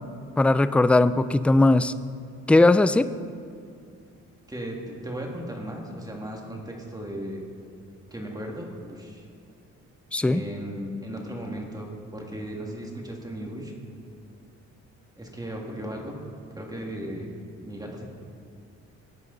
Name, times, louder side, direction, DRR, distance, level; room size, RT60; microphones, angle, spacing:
voice 1, 0.4-1.9 2.5-3.1 10.1-10.4, left 2 dB, 5° left, 13 dB, 0.3 m, -19 dB
voice 2, 4.5-7.4 8.1-9.3 10.2-13.7 15.2-16.2 16.6-17.3 17.6-18.0, right 1 dB, 10° right, 0 dB, 2.3 m, -36 dB
19.5 x 8.3 x 4.1 m, 2.4 s
cardioid pair, 90°, 30 cm